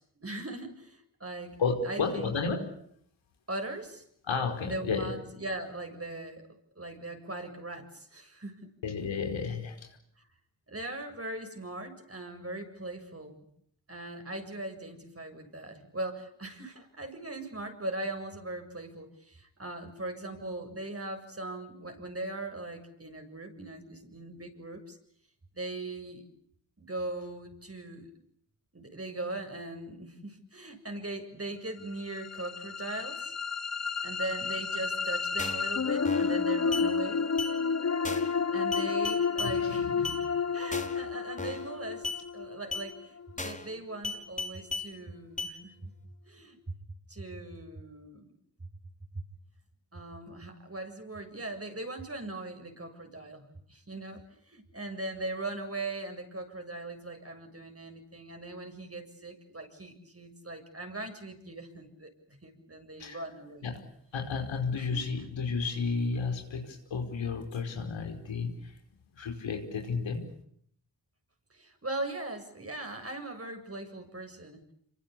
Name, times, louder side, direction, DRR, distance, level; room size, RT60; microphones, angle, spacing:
voice 1, 0.0-1.6 1.8-2.3 3.5-4.0 4.6-6.4 6.8-8.7 10.7-13.5 13.9-25.0 25.5-26.2 26.8-28.1 28.7-33.3 34.0-37.3 38.5-40.2 40.5-42.1 42.3-45.9 46.3-46.6 47.1-48.3 49.9-63.7 64.7-65.2 71.5-74.6, right 2 dB, 30° right, 5 dB, 7.6 m, -40 dB
voice 2, 1.6-2.7 4.3-5.1 8.8-10.0 39.4-40.3 63.0-63.2 63.6-63.8 64.1-68.7 69.1-70.2, left 5 dB, 80° left, 4 dB, 5.1 m, -32 dB
sound 1, 31.9-44.0, left 5 dB, 35° left, 1.3 m, -31 dB
sound 2, 35.4-35.7 36.0-36.4 36.7-36.9 37.4-37.5 38.0-38.4 38.7-39.5 40.0-40.2 40.7-41.0 41.4-41.7 42.0-42.2 42.7-42.9 43.4-43.7 44.0-44.9 45.4-45.5, left 3 dB, 15° left, 5.1 m, -36 dB
27.0 x 24.0 x 8.6 m, 0.69 s
supercardioid pair, 40°, 45 cm